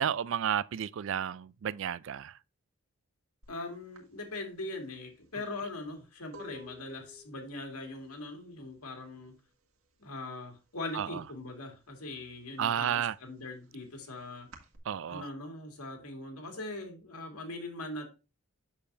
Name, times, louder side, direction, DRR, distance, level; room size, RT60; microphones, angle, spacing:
voice 1, 0.0-2.4 10.9-11.2 12.6-13.2 14.8-15.3, right 9 dB, 60° right, 0.3 m, -32 dB
sound 1, 3.4-3.6 3.9-9.6 9.9-10.4 10.7-11.8 12.2-14.8, left 1 dB, 75° right, 1.7 m, -54 dB
voice 2, 3.5-9.3 10.0-14.5 15.1-18.1, left 2 dB, 90° left, 2.3 m, -41 dB
7.4 x 6.7 x 2.6 m
head